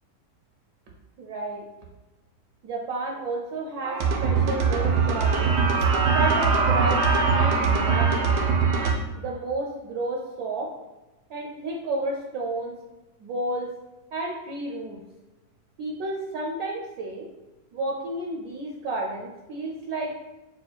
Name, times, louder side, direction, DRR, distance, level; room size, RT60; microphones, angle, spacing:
voice 1, 1.2-1.6 2.6-5.5 6.1-7.0 7.3-8.4 9.2-10.7 11.3-12.7 13.2-13.7 14.1-15.0 15.8-17.3 17.7-20.1, right 2 dB, 70° right, -1 dB, 1.0 m, -31 dB
sound 1, 3.8-8.9, right 5 dB, 90° right, 1.2 m, -22 dB
6.1 x 2.2 x 2.4 m, 1.1 s
omnidirectional pair, 1.7 m